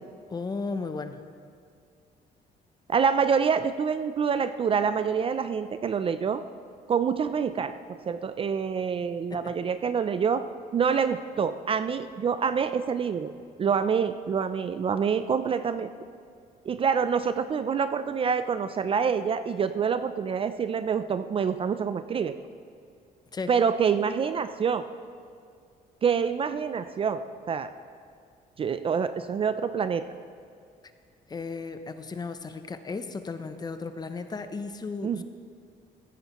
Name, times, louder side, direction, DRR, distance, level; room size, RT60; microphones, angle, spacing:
voice 1, 0.3-1.2 9.3-9.5 13.6-13.7 23.3-23.5 31.3-35.2, left 4 dB, 25° left, 9 dB, 0.6 m, -35 dB
voice 2, 2.9-6.4 6.9-10.4 10.7-13.3 13.6-15.9 16.6-22.4 23.5-24.9 26.0-27.2 27.5-27.7 28.6-30.0 35.0-35.2, right 6 dB, 35° right, 11 dB, 0.4 m, -26 dB
15.0 x 10.0 x 3.0 m, 2.3 s
cardioid pair, 130°, 17 cm